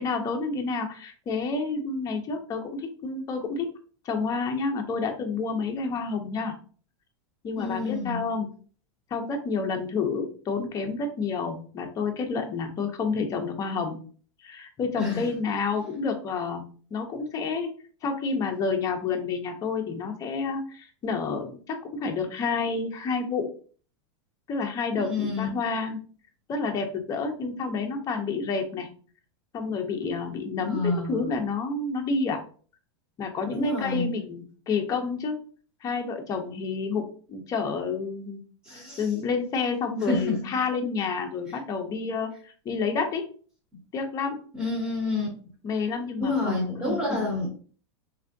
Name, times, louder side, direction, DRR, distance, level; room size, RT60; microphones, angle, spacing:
voice 1, 0.0-3.7 4.0-6.6 7.4-8.5 9.1-14.0 14.4-16.7 16.9-17.7 18.0-23.5 24.5-26.0 26.5-28.9 29.5-32.4 33.2-35.4 35.8-38.4 38.7-43.2 43.9-44.4 45.6-47.4, left 4 dB, 20° left, 3 dB, 0.6 m, -29 dB
voice 2, 7.6-8.2 15.0-15.3 25.0-25.5 30.6-31.3 33.5-34.1 38.6-39.0 40.1-40.4 44.5-45.3 46.2-47.5, left 3 dB, 10° right, -4 dB, 0.9 m, -28 dB
3.3 x 2.5 x 2.6 m, 0.42 s
supercardioid pair, 150°, 15 cm